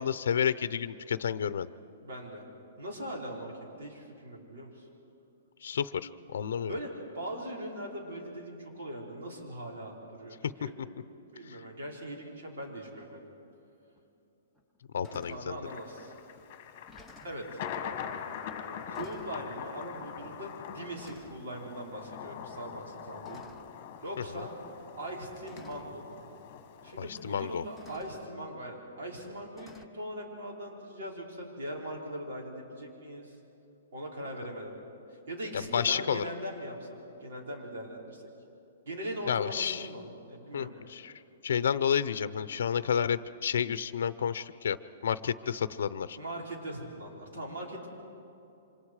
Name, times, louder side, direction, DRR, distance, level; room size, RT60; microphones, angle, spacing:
voice 1, 0.0-1.7 5.6-6.7 11.5-11.6 14.9-15.6 24.3-24.4 27.0-27.6 35.5-36.2 39.3-39.9 40.5-41.1 41.4-44.8 45.0-46.2, left 8 dB, 70° left, 14 dB, 0.7 m, -30 dB
voice 2, 2.0-2.5 2.8-3.5 3.8-4.9 6.6-10.7 11.3-13.3 15.1-16.1 17.2-17.6 18.9-23.5 24.0-24.5 25.0-26.2 26.8-33.4 33.9-34.7 35.1-38.2 38.8-40.7 46.2-47.9, equal, 65° right, -1 dB, 5.2 m, -40 dB
sound 1, 14.0-14.1 14.6-14.8 15.0-15.5 16.4-16.5 16.8-17.5 18.4-18.6 18.9-19.4 20.4-20.6 21.0-21.5 23.2-23.8 24.9-25.0 25.5-25.9 27.1-27.2 27.8-28.3 29.6-29.9, left 2 dB, ahead, 0.6 m, -54 dB
Thunder, 15.7-28.0, left 8 dB, 30° left, 1.8 m, -43 dB
28.5 x 25.5 x 4.9 m, 2.8 s
hypercardioid pair, 175°, 0 cm